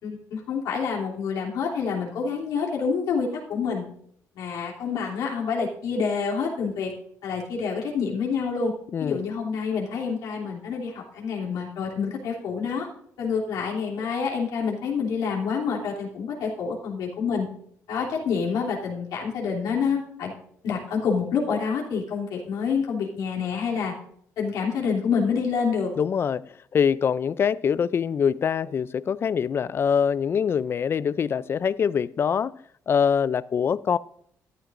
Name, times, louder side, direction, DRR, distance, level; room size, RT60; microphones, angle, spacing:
voice 1, 0.0-3.8 4.3-6.9 7.2-8.7 9.0-12.9 13.2-17.5 17.9-20.3 20.6-23.9 24.4-25.9, left 5 dB, 85° left, 3.0 m, -27 dB
voice 2, 26.0-32.5 32.9-34.0, left 7 dB, 40° left, 0.4 m, -24 dB
13.5 x 11.5 x 2.6 m
cardioid pair, 110°, 6 cm